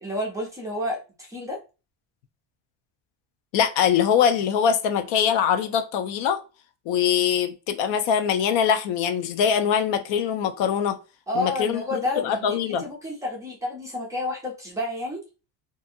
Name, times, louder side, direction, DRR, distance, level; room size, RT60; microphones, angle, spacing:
voice 1, 0.0-1.6 11.3-15.2, left 1 dB, 5° right, 0.6 m, -30 dB
voice 2, 3.5-6.4 6.9-11.0 11.3-12.9, left 8 dB, 75° left, 0.6 m, -23 dB
2.6 x 2.6 x 2.6 m
cardioid pair, 160°, 46 cm